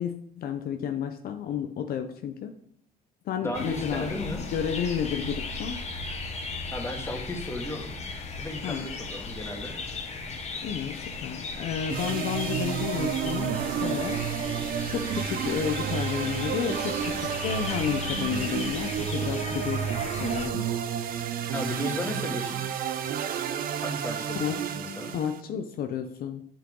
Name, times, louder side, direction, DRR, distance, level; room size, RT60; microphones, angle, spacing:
voice 1, 0.0-2.5 3.3-5.8 8.6-8.9 10.6-14.2 14.9-20.7 24.4-24.6 25.1-26.5, left 8 dB, 60° left, 7 dB, 0.7 m, -31 dB
voice 2, 3.4-4.4 6.7-8.0 8.4-9.7 21.5-22.6 23.8-25.1, left 1 dB, 15° left, 2 dB, 1.9 m, -34 dB
sound 1, 3.5-20.5, left 4 dB, 40° left, 1.2 m, -37 dB
sound 2, 11.9-25.4, right 8 dB, 60° right, 0.6 m, -31 dB
8.5 x 5.7 x 3.8 m, 0.66 s
cardioid pair, 110°, 17 cm